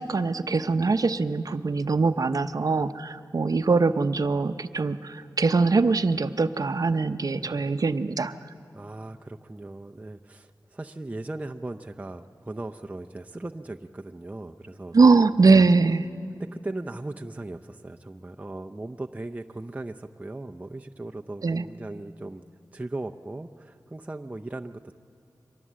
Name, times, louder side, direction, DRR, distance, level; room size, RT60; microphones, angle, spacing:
voice 1, 0.0-8.3 14.9-16.0 21.4-21.6, right 4 dB, 55° right, 11 dB, 0.7 m, -22 dB
voice 2, 7.3-7.7 8.7-15.0 15.5-15.7 16.3-22.4 22.7-24.9, right 2 dB, 20° right, 4 dB, 0.6 m, -38 dB
24.0 x 19.5 x 7.5 m, 2.5 s
cardioid pair, 55°, 7 cm